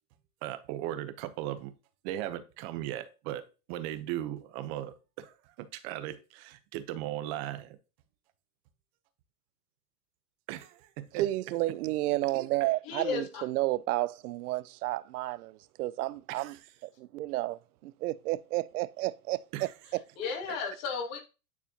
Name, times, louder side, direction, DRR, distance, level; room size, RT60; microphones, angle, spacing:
voice 1, 0.4-1.7 2.0-3.4 3.7-7.8 10.5-11.2 16.3-16.6 19.5-19.7, right 13 dB, 45° right, 0.9 m, -37 dB
voice 2, 11.2-16.6 17.0-20.0, right 17 dB, 75° right, 0.6 m, -31 dB
voice 3, 12.8-13.4 20.2-21.2, left 5 dB, 45° left, 2.5 m, -34 dB
9.6 x 4.1 x 2.9 m
supercardioid pair, 140°, 45 cm